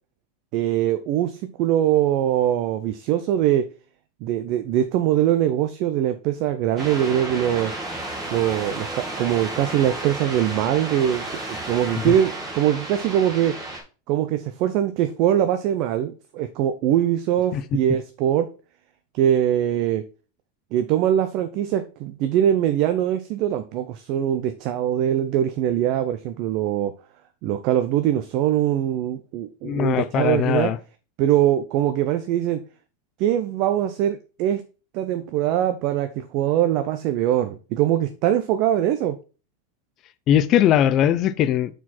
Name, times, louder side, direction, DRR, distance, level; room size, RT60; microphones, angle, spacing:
voice 1, 0.5-3.7 4.2-7.7 8.3-11.2 11.5-13.5 14.1-18.5 19.2-20.0 20.7-26.9 27.4-30.7 31.2-32.6 33.2-34.6 34.9-39.2, right 11 dB, 35° right, 0.5 m, -22 dB
sound 1, 6.8-13.8, right 2 dB, 20° right, 1.6 m, -32 dB
voice 2, 29.6-30.8 40.3-41.7, left 10 dB, 25° left, 0.4 m, -20 dB
6.2 x 4.6 x 4.2 m
supercardioid pair, 180°, 0 cm